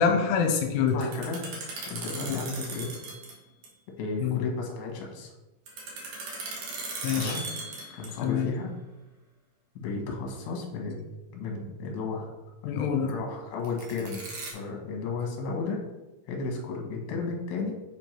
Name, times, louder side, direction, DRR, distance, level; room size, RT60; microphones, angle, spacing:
voice 1, 0.0-0.9 4.2-4.4 7.0-7.4 8.2-8.5 12.7-13.1, left 6 dB, 85° left, 4 dB, 2.8 m, -25 dB
voice 2, 0.9-1.5 1.9-2.9 4.0-5.3 7.1-7.4 7.9-8.7 9.8-11.0 11.3-12.3 13.0-14.2 14.5-15.8 16.3-17.7, left 4 dB, 70° left, 0 dB, 2.9 m, -33 dB
sound 1, 0.9-3.4 3.6-3.7 5.7-8.3 13.6-14.5, right 3 dB, 80° right, 1.5 m, -38 dB
7.6 x 3.6 x 4.5 m, 1.0 s
omnidirectional pair, 5.0 m